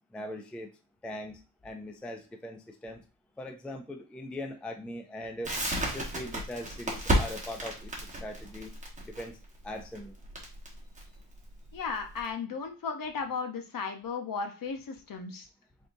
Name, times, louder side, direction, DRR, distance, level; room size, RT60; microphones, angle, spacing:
voice 1, 0.1-0.7 1.0-3.0 3.4-5.6 5.9-8.7 9.0-9.4 9.6-10.1, left 1 dB, 5° left, 5 dB, 0.3 m, -40 dB
Crackle, 5.4-12.3, right 1 dB, 15° right, 1.2 m, -33 dB
voice 2, 11.7-15.5, left 5 dB, 50° left, 4 dB, 0.8 m, -35 dB
3.8 x 3.6 x 2.6 m, 0.34 s
wide cardioid pair, 145°, 42 cm